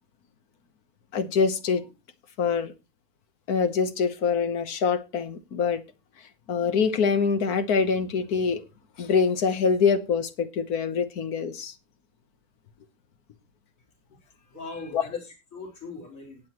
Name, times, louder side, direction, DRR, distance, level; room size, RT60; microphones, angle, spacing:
voice 1, 1.1-1.8 2.4-2.7 3.5-5.8 6.5-8.6 9.0-11.7 14.9-15.0, left 5 dB, 80° left, 1.6 m, -24 dB
voice 2, 14.4-16.4, left 3 dB, 60° left, 4.0 m, -41 dB
18.0 x 7.9 x 3.0 m
omnidirectional pair, 1.6 m